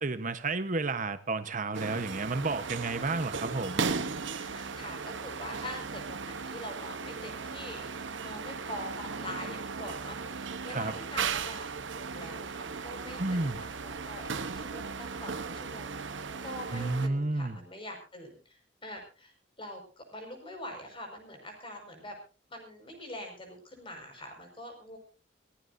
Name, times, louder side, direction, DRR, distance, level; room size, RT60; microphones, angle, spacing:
voice 1, 0.0-3.9 10.7-10.9 13.2-13.6 16.7-17.6, right 3 dB, 45° right, 1.1 m, -31 dB
sound 1, 1.7-17.1, right 5 dB, 75° right, 1.0 m, -37 dB
voice 2, 4.4-18.6 18.8-22.2 22.5-25.0, left 1 dB, 30° left, 5.6 m, -44 dB
23.5 x 16.0 x 2.7 m
head